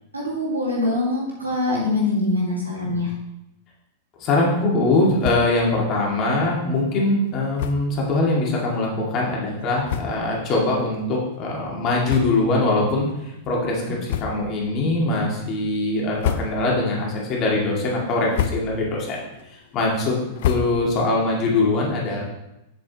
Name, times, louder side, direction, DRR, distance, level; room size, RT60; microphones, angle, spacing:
voice 1, 0.1-3.1, left 2 dB, 85° right, -4 dB, 2.2 m, -23 dB
voice 2, 4.2-19.2 19.5-20.1 20.4-22.2, left 2 dB, 35° left, -3 dB, 2.3 m, -22 dB
sound 1, 5.2-5.7 6.0-6.1 6.4-6.5 7.5-8.0 8.7-8.8 9.5-9.6 9.8-10.4 10.9-11.1 12.0-12.7 13.0-13.2 14.0-14.6 15.1-15.5 16.0-16.9 17.3-17.7 18.1-19.0 19.3-21.2, left 9 dB, 55° left, 0.5 m, -30 dB
7.5 x 6.9 x 3.1 m, 0.90 s
figure-of-eight pair, 95°, 0 cm